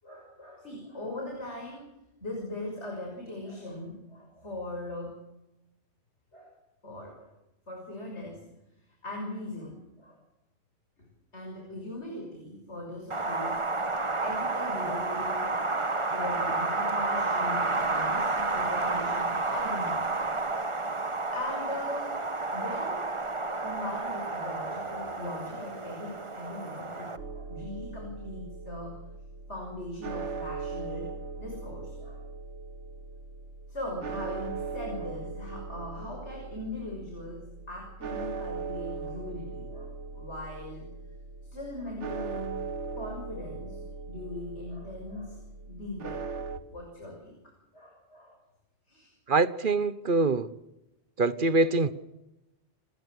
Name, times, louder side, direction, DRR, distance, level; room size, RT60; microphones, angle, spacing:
voice 1, 0.0-1.9 2.2-5.2 6.3-6.6 6.8-7.3 7.7-8.4 9.0-10.2 11.0-11.1 11.3-20.0 21.1-22.2 22.5-23.1 23.6-29.0 29.5-32.3 33.7-40.9 41.5-42.6 42.9-45.4 45.7-46.3 46.7-48.4 48.9-49.1 51.6-51.9, left 1 dB, 75° left, 6.8 m, -40 dB
Wind, 13.1-27.2, right 3 dB, 25° right, 1.3 m, -30 dB
sound 1, 27.2-46.6, right 4 dB, 90° right, 1.6 m, -39 dB
voice 2, 49.3-50.5 51.2-51.9, right 3 dB, 50° right, 1.3 m, -24 dB
29.5 x 21.5 x 6.6 m
omnidirectional pair, 1.2 m